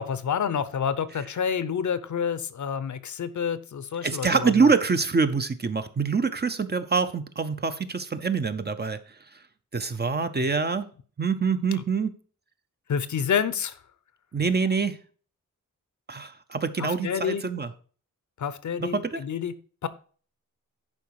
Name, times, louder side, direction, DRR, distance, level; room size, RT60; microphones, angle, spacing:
voice 1, 0.0-4.7 10.2-10.4 12.9-13.8 14.4-14.5 16.8-17.4 18.4-19.6 19.8-19.9, left 7 dB, 60° left, 0.7 m, -28 dB
voice 2, 4.0-9.0 9.7-10.9 11.2-12.1 14.3-15.0 16.1-17.7 18.8-19.2, right 5 dB, 30° right, 0.6 m, -25 dB
11.0 x 4.7 x 4.7 m
wide cardioid pair, 140°, 33 cm